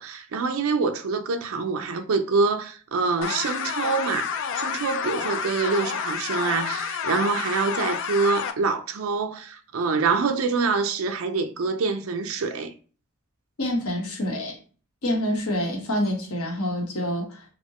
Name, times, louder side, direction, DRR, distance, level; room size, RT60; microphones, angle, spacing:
voice 1, 0.0-12.7, right 4 dB, 70° right, 0.5 m, -25 dB
sound 1, 3.2-8.5, left 7 dB, 60° left, 0.4 m, -29 dB
voice 2, 13.6-14.6 15.0-17.4, left 1 dB, 90° left, 1.2 m, -27 dB
4.2 x 2.1 x 2.9 m
head